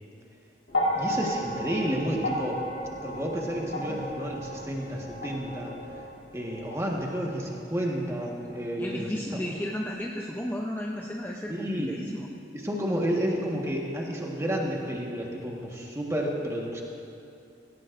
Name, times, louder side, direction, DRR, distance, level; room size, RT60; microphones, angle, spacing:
sound 1, 0.7-9.0 10.1-10.2, equal, 70° left, 1.9 m, -34 dB
voice 1, 1.0-2.6 3.0-5.7 6.3-9.1 11.5-11.9 12.6-16.8, equal, 15° right, -1 dB, 1.4 m, -31 dB
voice 2, 8.8-12.3, equal, 10° left, -1 dB, 0.6 m, -34 dB
17.0 x 17.0 x 2.6 m, 2.6 s
head